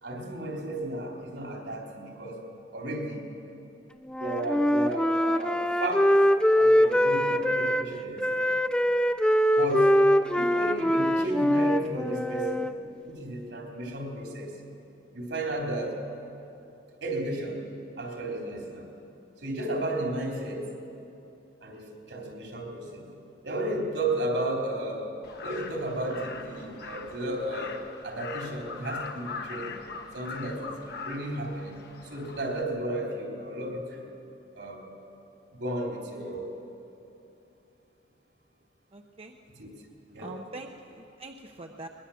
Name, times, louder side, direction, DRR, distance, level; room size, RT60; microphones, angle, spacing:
voice 1, 0.0-2.4 2.7-3.3 4.2-6.2 6.6-8.5 9.6-10.0 10.3-12.7 13.1-14.5 15.1-16.0 17.0-17.6 18.0-18.9 19.4-20.7 21.6-23.1 23.4-25.1 25.4-29.7 30.1-31.8 32.1-34.1 34.6-34.8 35.6-36.5 39.5-39.7 40.1-40.3, right 1 dB, 75° right, 0 dB, 3.6 m, -33 dB
Wind instrument woodwind instrument, 4.1-7.9 8.2-12.7, equal, 5° left, 0.4 m, -23 dB
Crow, 25.2-32.6, left 5 dB, 60° left, 1.2 m, -41 dB
voice 2, 38.9-39.4 40.2-41.9, right 2 dB, 35° right, 3 dB, 0.8 m, -43 dB
22.0 x 20.5 x 7.2 m, 2.9 s
head